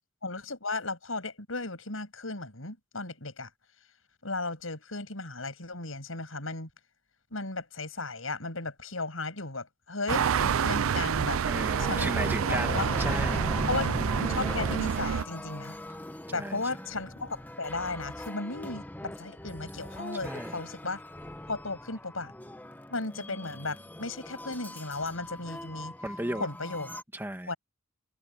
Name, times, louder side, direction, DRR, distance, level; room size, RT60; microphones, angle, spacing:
voice 1, 0.2-3.5 4.2-6.7 7.3-11.4 11.8-12.9 13.7-15.8 16.3-21.0 21.5-22.3 22.9-26.0 26.4-26.9 27.5-27.6, left 3 dB, 80° left, 7.0 m, -35 dB
sound 1, 10.1-15.2, right 7 dB, 85° right, 0.4 m, -28 dB
voice 2, 11.4-13.5 16.3-16.6 20.2-20.5 26.0-26.5 27.1-27.5, right 1 dB, 10° right, 1.5 m, -35 dB
sound 2, 11.8-27.0, left 1 dB, 10° left, 1.1 m, -39 dB
head